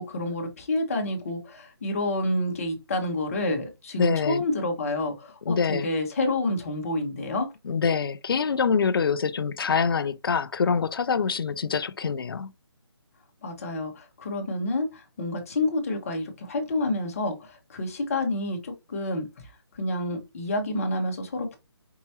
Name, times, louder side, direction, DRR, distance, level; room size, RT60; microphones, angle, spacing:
voice 1, 0.0-7.5 13.4-19.3 19.7-21.6, left 2 dB, 35° left, 1.2 m, -29 dB
voice 2, 4.0-4.4 5.5-5.9 7.7-12.5, left 5 dB, 60° left, 0.4 m, -25 dB
4.6 x 2.9 x 2.8 m
hypercardioid pair, 170°, 14 cm